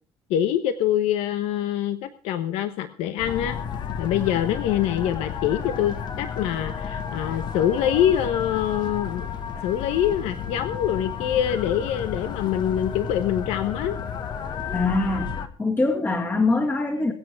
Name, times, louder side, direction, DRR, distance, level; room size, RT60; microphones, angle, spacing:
voice 1, 0.3-3.6 4.0-9.3 9.6-14.0, left 10 dB, 80° left, 1.1 m, -24 dB
sound 1, 3.2-15.5, left 7 dB, 45° left, 1.6 m, -32 dB
voice 2, 14.7-15.3 15.6-17.1, left 3 dB, 20° left, 2.1 m, -23 dB
22.5 x 8.3 x 4.7 m
cardioid pair, 120°, 10 cm